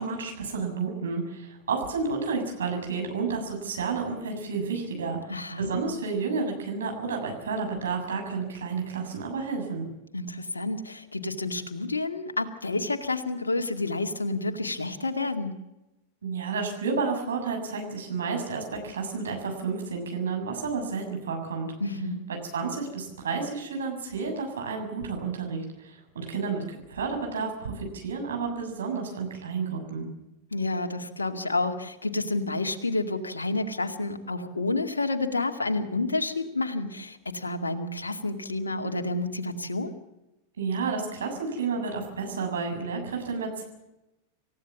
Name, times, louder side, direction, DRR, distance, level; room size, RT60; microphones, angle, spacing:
voice 1, 0.0-5.2 5.6-9.9 16.2-21.7 22.5-30.1 40.6-43.6, right 4 dB, 65° right, 3 dB, 7.0 m, -31 dB
voice 2, 5.3-5.7 10.1-15.5 21.8-22.2 30.5-39.9, left 2 dB, 75° left, 6 dB, 2.3 m, -29 dB
27.5 x 16.0 x 7.3 m, 0.95 s
figure-of-eight pair, 90°, 0 cm